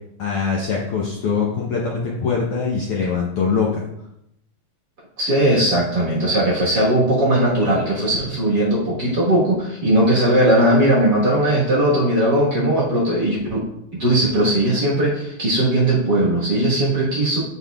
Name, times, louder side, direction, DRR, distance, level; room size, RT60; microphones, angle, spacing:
voice 1, 0.2-3.8, left 5 dB, 70° left, -2 dB, 1.4 m, -22 dB
voice 2, 5.2-13.6 14.0-17.4, right 1 dB, 45° right, -6 dB, 1.5 m, -18 dB
8.2 x 5.5 x 2.3 m, 0.80 s
omnidirectional pair, 3.3 m